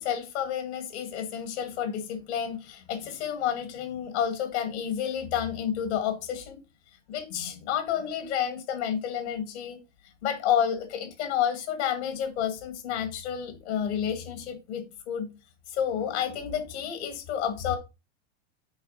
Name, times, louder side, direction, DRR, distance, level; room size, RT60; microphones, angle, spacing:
voice 1, 0.0-6.6 7.1-9.8 10.2-15.3 15.7-17.8, left 9 dB, 70° left, 2.1 m, -30 dB
8.6 x 4.9 x 4.1 m
hypercardioid pair, 115°, 35 cm